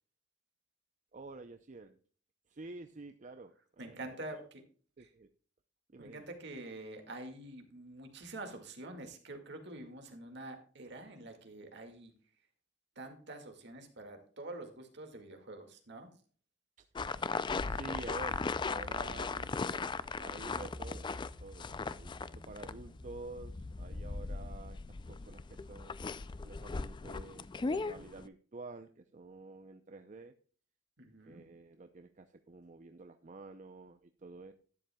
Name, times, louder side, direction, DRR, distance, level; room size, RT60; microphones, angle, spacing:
voice 1, 1.1-2.0 2.5-4.0 5.0-5.3 5.9-6.3 17.7-19.9 20.2-26.0 26.3-30.3 31.2-34.5, right 3 dB, 40° right, 8 dB, 0.6 m, -49 dB
voice 2, 3.8-4.6 5.0-5.1 6.0-12.1 13.0-16.1 31.0-31.5, right 2 dB, 65° right, 4 dB, 2.0 m, -46 dB
sound 1, 17.0-28.3, left 4 dB, 25° left, 0.4 m, -38 dB
sound 2, 17.6-24.4, left 1 dB, 50° left, 2.0 m, -50 dB
12.0 x 10.5 x 2.3 m, 0.43 s
head